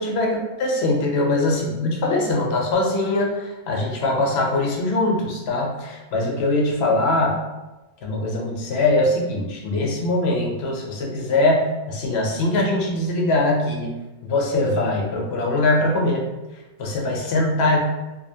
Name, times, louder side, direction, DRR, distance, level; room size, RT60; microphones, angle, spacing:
voice 1, 0.0-7.4 8.0-14.0 14.2-16.2 16.8-17.8, left 2 dB, 70° left, -1 dB, 0.8 m, -22 dB
2.6 x 2.1 x 2.6 m, 1.1 s
omnidirectional pair, 1.1 m